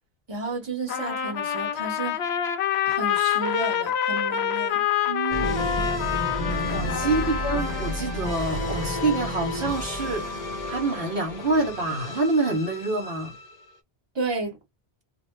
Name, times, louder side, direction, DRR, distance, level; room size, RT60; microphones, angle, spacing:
voice 1, 0.3-2.2 2.9-4.8 6.6-6.7 7.2-7.3 14.1-14.6, right 3 dB, 25° right, 1.1 m, -32 dB
Trumpet, 0.9-8.0, left 9 dB, 75° left, 0.9 m, -27 dB
voice 2, 5.1-5.8 6.7-13.4, right 2 dB, 60° right, 0.9 m, -27 dB
sound 1, 5.3-13.7, left 1 dB, 40° left, 0.7 m, -31 dB
2.7 x 2.1 x 3.0 m
omnidirectional pair, 1.1 m